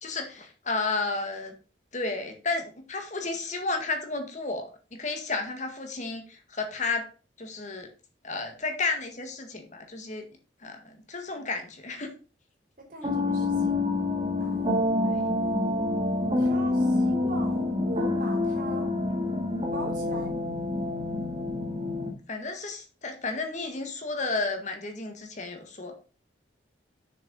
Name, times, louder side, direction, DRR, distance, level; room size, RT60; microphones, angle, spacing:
voice 1, 0.0-1.5 1.9-7.1 7.4-7.9 8.2-10.2 10.6-12.1 15.1-15.3 22.3-26.0, left 3 dB, 40° left, 5 dB, 1.8 m, -32 dB
voice 2, 12.9-13.8 14.4-14.9 16.4-18.9 19.7-20.3, right 1 dB, 50° right, 1 dB, 3.5 m, -40 dB
sound 1, 13.0-22.1, left 2 dB, 30° right, 2.0 m, -27 dB
6.8 x 6.5 x 5.4 m, 0.35 s
head